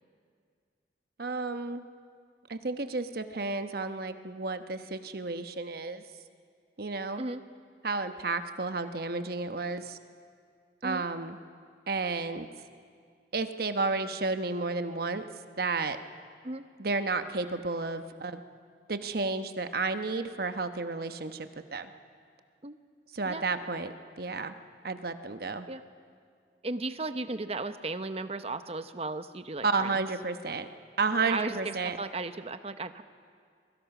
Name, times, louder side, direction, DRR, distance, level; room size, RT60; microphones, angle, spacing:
voice 1, 1.2-1.8 2.5-6.0 6.8-7.2 7.8-10.0 10.8-11.4 11.9-12.5 13.3-15.2 15.6-16.0 16.8-18.4 18.9-21.9 23.1-24.6 24.8-25.7 29.6-30.6 31.0-32.0, right 3 dB, 55° right, 8 dB, 1.1 m, -32 dB
voice 2, 26.6-30.0 31.2-33.0, right 3 dB, 35° right, 10 dB, 0.8 m, -35 dB
29.0 x 22.5 x 6.0 m, 2.2 s
head